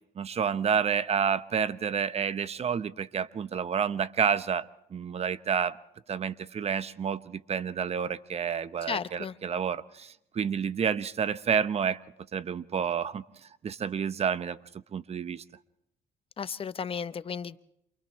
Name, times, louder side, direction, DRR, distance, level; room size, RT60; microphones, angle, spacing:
voice 1, 0.2-5.8 6.1-12.0 12.3-13.2 13.6-14.6 14.9-15.4, right 7 dB, 40° right, 1.0 m, -29 dB
voice 2, 8.9-9.3 16.4-17.6, left 6 dB, 35° left, 0.9 m, -34 dB
28.5 x 28.0 x 3.2 m
cardioid pair, 110°, 17 cm